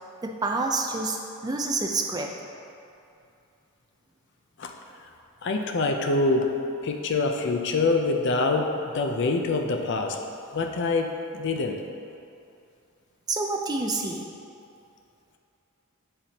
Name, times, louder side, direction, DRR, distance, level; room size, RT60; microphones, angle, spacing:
voice 1, 0.2-2.3 13.3-14.3, right 3 dB, 15° right, 2 dB, 0.3 m, -28 dB
voice 2, 5.4-10.2 10.5-11.8, left 3 dB, 50° left, 3 dB, 0.5 m, -25 dB
10.5 x 3.6 x 2.8 m, 2.6 s
head